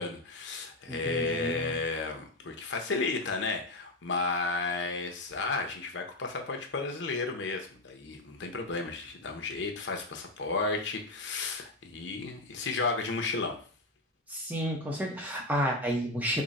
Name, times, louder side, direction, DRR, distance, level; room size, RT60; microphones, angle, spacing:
voice 1, 0.0-13.6, left 3 dB, 85° left, 4 dB, 0.7 m, -33 dB
voice 2, 0.9-1.7 14.3-16.4, equal, 10° right, -1 dB, 0.7 m, -31 dB
3.7 x 2.0 x 4.0 m, 0.41 s
head